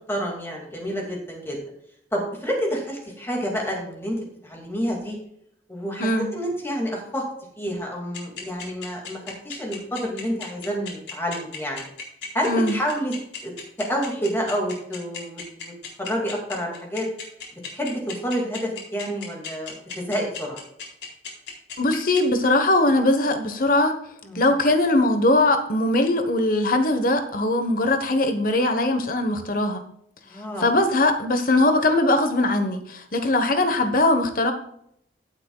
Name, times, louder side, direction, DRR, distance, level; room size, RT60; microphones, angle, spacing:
voice 1, 0.1-1.6 2.1-5.2 5.7-7.2 7.6-11.9 12.3-13.1 13.4-13.5 13.9-15.7 16.0-17.1 17.7-20.6 24.2-24.4 30.3-30.7, equal, 15° left, -1 dB, 2.4 m, -29 dB
sound 1, 8.1-22.2, left 8 dB, 80° left, 4.0 m, -35 dB
voice 2, 21.8-24.0 24.3-29.8 30.6-34.5, left 2 dB, 50° left, 7 dB, 1.2 m, -21 dB
15.5 x 8.3 x 2.4 m, 0.71 s
head